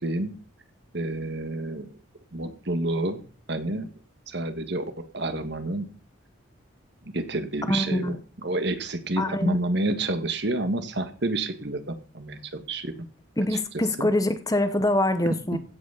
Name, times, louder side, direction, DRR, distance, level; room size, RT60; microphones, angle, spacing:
voice 1, 0.0-0.3 0.9-1.9 2.3-3.2 3.5-3.9 4.3-4.8 5.1-5.9 7.0-12.9 13.5-13.6 14.0-14.1 15.2-15.6, right 2 dB, 55° right, 9 dB, 1.7 m, -29 dB
voice 2, 7.7-8.2 9.2-9.6 13.4-15.6, left 1 dB, 15° left, 10 dB, 1.0 m, -24 dB
16.0 x 6.3 x 7.1 m, 0.41 s
head